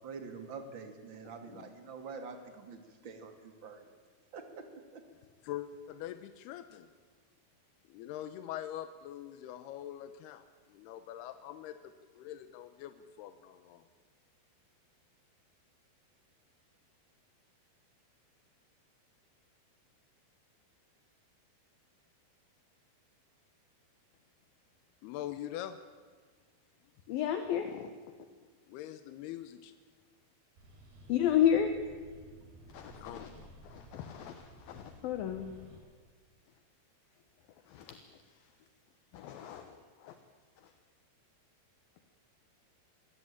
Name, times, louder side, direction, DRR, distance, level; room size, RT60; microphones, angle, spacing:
voice 1, 0.0-4.0 4.3-4.7 4.9-5.0, right 5 dB, 35° right, 6 dB, 2.3 m, -46 dB
voice 2, 5.4-6.9 7.9-13.8 25.0-25.8 28.7-29.7 32.9-33.2, left 12 dB, 85° left, 11 dB, 2.8 m, -43 dB
voice 3, 27.1-27.9 31.1-31.8 32.7-33.3 33.6-35.5 37.7-38.4 39.1-40.2 40.6-40.7, left 9 dB, 70° left, 8 dB, 2.8 m, -33 dB
sound 1, 30.6-35.8, right 1 dB, 80° right, 6.4 m, -55 dB
23.5 x 17.0 x 8.8 m, 1.5 s
omnidirectional pair, 4.5 m